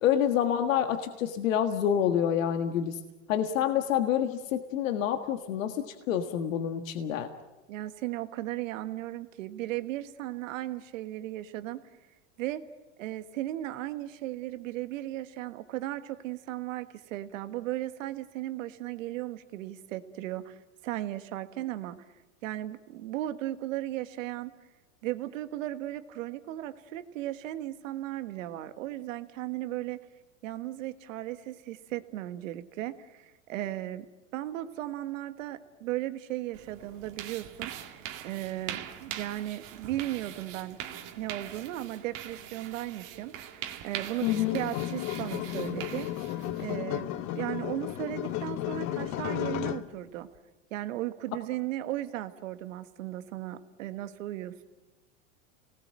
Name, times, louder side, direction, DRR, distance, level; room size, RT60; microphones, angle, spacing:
voice 1, 0.0-3.0 3.3-7.3 44.2-44.6, left 9 dB, 80° left, 6 dB, 1.7 m, -27 dB
voice 2, 7.7-11.8 12.4-12.6 13.0-20.6 20.8-22.0 22.4-24.5 25.0-30.0 30.4-34.0 34.3-40.8 41.2-46.1 46.6-47.1 47.3-50.3 50.7-54.6, right 14 dB, 75° right, 10 dB, 1.6 m, -36 dB
sound 1, 36.5-46.8, right 11 dB, 50° right, 2.3 m, -42 dB
sound 2, 44.3-49.9, left 13 dB, 45° left, 1.1 m, -34 dB
29.0 x 19.5 x 7.6 m, 1.1 s
supercardioid pair, 120°, 39 cm